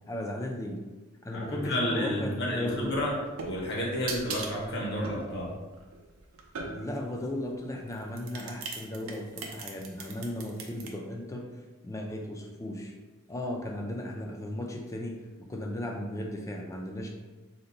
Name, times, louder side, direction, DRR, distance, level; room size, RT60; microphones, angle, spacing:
voice 1, 0.1-0.8 1.2-2.9 6.6-11.5 11.8-12.9 13.3-15.2 15.5-17.1, left 1 dB, 15° left, 1 dB, 0.3 m, -35 dB
voice 2, 1.3-3.1 3.4-5.5, left 1 dB, 55° left, -3 dB, 0.9 m, -31 dB
sound 1, 2.8-7.1 7.9-10.9, right 4 dB, 80° right, 0.5 m, -40 dB
2.8 x 2.2 x 3.8 m, 1.2 s
head